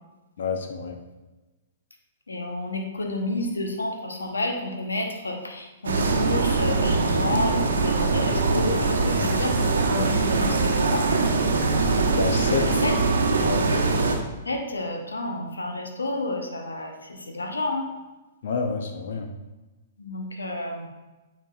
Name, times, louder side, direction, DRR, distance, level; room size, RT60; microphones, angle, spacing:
voice 1, 0.4-1.0 9.9-10.1 12.2-12.7 13.4-13.6 18.4-19.3, left 5 dB, 65° left, 5 dB, 0.7 m, -28 dB
voice 2, 2.3-11.1 12.4-13.0 14.4-17.9 20.0-20.9, left 2 dB, 85° left, 2 dB, 1.0 m, -30 dB
sound 1, 5.8-14.2, right 3 dB, 75° right, 0.9 m, -22 dB
8.9 x 4.6 x 2.4 m, 1.1 s
figure-of-eight pair, 115°, 0 cm